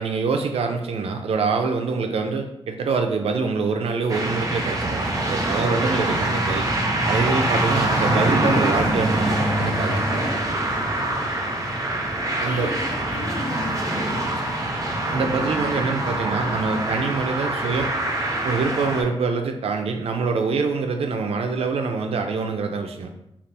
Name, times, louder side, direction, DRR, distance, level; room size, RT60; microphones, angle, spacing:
voice 1, 0.0-6.7 7.1-10.2 12.4-12.8 15.1-17.9 18.4-23.3, right 4 dB, 90° right, 5 dB, 0.4 m, -25 dB
sound 1, 4.1-19.0, right 1 dB, 35° right, 0.5 m, -24 dB
voice 2, 12.4-14.6, left 3 dB, 70° left, 2 dB, 0.5 m, -35 dB
2.7 x 2.4 x 3.2 m, 0.82 s
wide cardioid pair, 115°, 10 cm